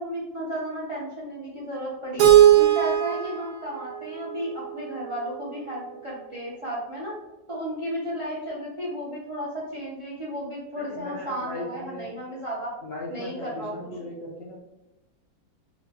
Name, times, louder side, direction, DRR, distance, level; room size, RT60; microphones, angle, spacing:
voice 1, 0.0-7.2 7.5-12.7 13.1-14.1, right 1 dB, 45° right, -5 dB, 0.4 m, -33 dB
Keyboard (musical), 2.2-5.1, right 11 dB, 85° right, 1.2 m, -19 dB
voice 2, 10.8-12.2 12.8-14.6, left 1 dB, 75° left, -3 dB, 0.5 m, -37 dB
4.2 x 2.2 x 2.8 m, 0.97 s
omnidirectional pair, 1.8 m